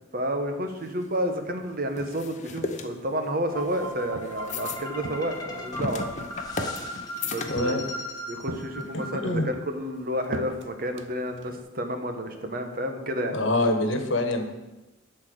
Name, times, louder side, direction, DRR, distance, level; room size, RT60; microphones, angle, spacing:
voice 1, 0.1-6.1 7.2-7.8 8.3-13.4, equal, 45° right, 6 dB, 1.2 m, -30 dB
sound 1, 0.7-8.0, left 3 dB, 35° left, 0.8 m, -37 dB
sound 2, 3.5-9.6, equal, 20° left, 1.3 m, -37 dB
Walk footsteps, 3.9-4.6 5.0-6.0 6.6-7.2 7.6-8.1 8.5-9.1 9.4-11.6, right 3 dB, 65° right, 0.7 m, -39 dB
voice 2, 7.5-7.8 8.9-9.5 13.3-14.4, left 2 dB, 70° left, 5 dB, 1.4 m, -25 dB
11.5 x 4.5 x 7.8 m, 1.1 s
head